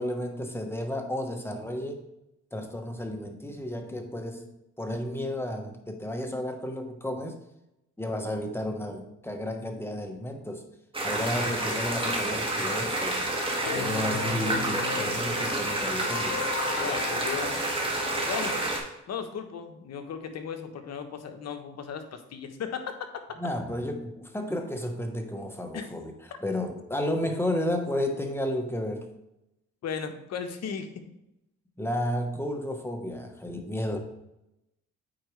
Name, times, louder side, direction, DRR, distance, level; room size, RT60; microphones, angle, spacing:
voice 1, 0.0-2.1 2.5-4.4 4.8-7.4 8.0-10.6 11.0-13.3 13.7-16.4 23.4-26.1 26.4-29.1 31.8-34.0, left 1 dB, 10° left, 4 dB, 1.1 m, -32 dB
sound 1, 10.9-18.8, right 1 dB, 15° right, 1.7 m, -29 dB
Keyboard (musical), 13.7-18.6, left 11 dB, 80° left, 0.9 m, -38 dB
voice 2, 16.8-17.6 18.3-18.6 19.1-23.4 25.7-25.9 29.8-31.0, left 6 dB, 60° left, 7 dB, 1.0 m, -36 dB
8.6 x 4.5 x 3.2 m, 0.87 s
cardioid pair, 90°, 30 cm